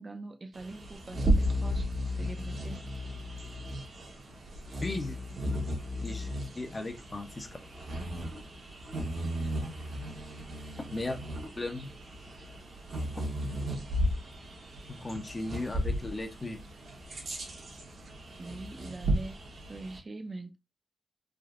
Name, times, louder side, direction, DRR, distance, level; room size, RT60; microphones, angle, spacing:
voice 1, 0.0-2.9 18.4-19.4 19.7-20.6, right 2 dB, 40° right, 0.5 m, -43 dB
Bird vocalization bird call bird song, 0.5-20.0, equal, 70° right, 1.1 m, -34 dB
voice 2, 4.8-5.2 6.0-6.3 6.6-7.5 10.9-11.2 11.6-11.9 14.9-16.6, left 2 dB, 30° left, 0.6 m, -36 dB
3.5 x 2.6 x 2.4 m
wide cardioid pair, 95°, 0 cm